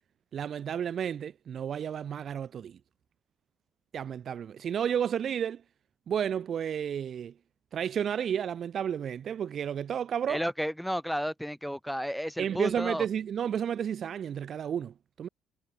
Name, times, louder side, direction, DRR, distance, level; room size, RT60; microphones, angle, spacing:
voice 1, 0.3-2.8 3.9-5.6 6.1-7.3 7.7-10.4 12.4-15.3, right 8 dB, 50° right, 0.9 m, -32 dB
voice 2, 10.3-13.1, equal, ahead, 4.6 m, -32 dB
cardioid pair, 110°, 0 cm